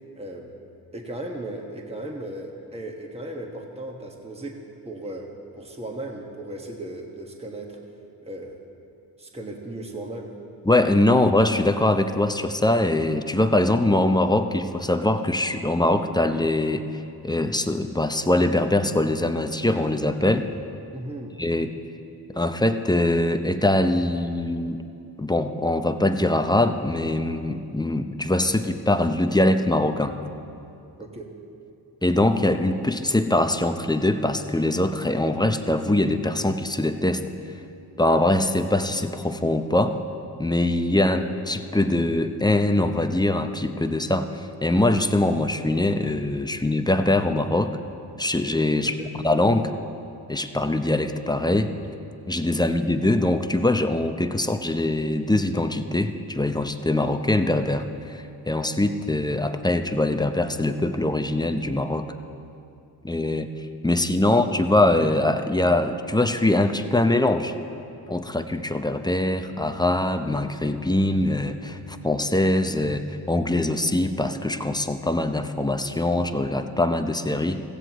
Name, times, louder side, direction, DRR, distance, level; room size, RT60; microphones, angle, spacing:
voice 1, 0.1-0.5 0.9-4.6 4.8-5.3 5.6-7.8 8.2-8.6 9.2-10.3 20.9-21.3 31.0-31.3 48.8-49.1, right 1 dB, 15° right, 1 dB, 1.6 m, -36 dB
voice 2, 10.6-16.9 17.2-20.5 21.4-21.7 22.3-24.8 25.2-30.2 32.0-37.2 38.0-40.0 40.4-47.8 48.2-49.7 50.3-51.7 52.3-62.1 63.0-63.5 63.8-67.5 68.1-77.6, left 1 dB, 10° left, 8 dB, 0.7 m, -23 dB
16.5 x 15.5 x 3.1 m, 2.6 s
cardioid pair, 60°, 41 cm